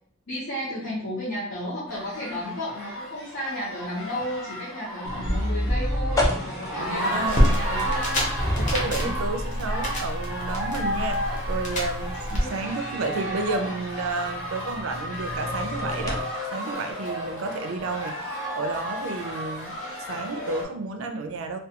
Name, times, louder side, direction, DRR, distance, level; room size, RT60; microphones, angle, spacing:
voice 1, 0.3-8.3 9.0-9.2 12.3-12.6, left 1 dB, 75° left, -8 dB, 0.8 m, -33 dB
sound 1, 1.9-20.7, equal, 90° left, 1.2 m, -33 dB
sound 2, 5.0-16.2, left 1 dB, 15° left, 0.4 m, -32 dB
voice 2, 6.8-7.6 8.6-11.2 11.5-16.2 16.5-19.8 20.1-21.6, right 3 dB, 75° right, 6 dB, 0.4 m, -31 dB
sound 3, 7.3-12.4, equal, 40° left, 0.8 m, -27 dB
2.3 x 2.2 x 2.8 m, 0.65 s
head